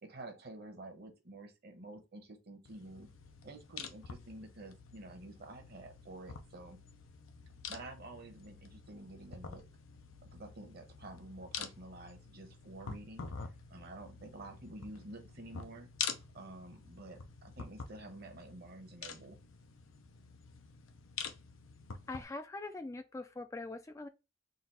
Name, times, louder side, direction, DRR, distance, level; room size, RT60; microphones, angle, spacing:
voice 1, 0.0-3.1 3.4-6.8 7.7-9.6 10.2-13.3 13.7-15.9 16.3-19.4, right 2 dB, 50° right, 1.1 m, -50 dB
sound 1, 2.7-22.2, left 6 dB, 90° left, 0.7 m, -47 dB
voice 2, 22.1-24.1, left 2 dB, 15° left, 0.3 m, -43 dB
3.9 x 2.5 x 4.2 m
head